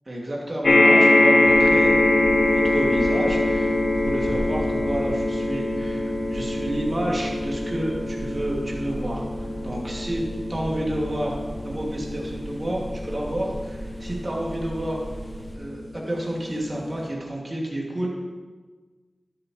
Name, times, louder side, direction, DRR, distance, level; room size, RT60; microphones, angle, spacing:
voice 1, 0.1-1.9 2.2-3.8 4.0-10.2 10.5-11.4 11.6-15.0 15.6-18.1, right 1 dB, 40° right, -3 dB, 2.3 m, -30 dB
sound 1, 0.6-15.2 15.9-16.0 16.3-16.4, left 1 dB, 70° left, 1.5 m, -23 dB
sound 2, 1.4-15.5, right 1 dB, 5° left, 1.4 m, -37 dB
12.0 x 7.8 x 3.2 m, 1.4 s
cardioid pair, 45°, 0 cm